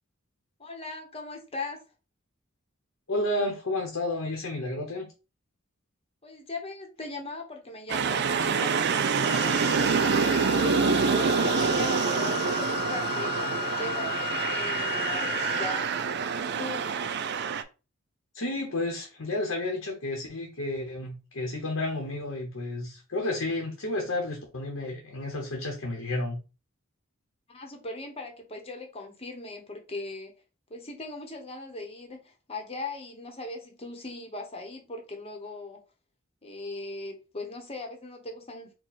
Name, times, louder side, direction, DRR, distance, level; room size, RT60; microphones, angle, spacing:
voice 1, 0.6-1.8 6.2-10.8 11.1-16.1 16.3-16.9 27.5-30.3 30.7-35.8 36.4-38.7, left 2 dB, 30° left, 1.0 m, -39 dB
voice 2, 3.1-5.1 18.3-26.4, left 2 dB, 80° left, 1.1 m, -31 dB
sound 1, 7.9-17.6, right 5 dB, 55° right, 0.4 m, -26 dB
Wind instrument woodwind instrument, 9.2-15.9, left 9 dB, 45° left, 0.3 m, -35 dB
4.6 x 2.3 x 4.1 m
head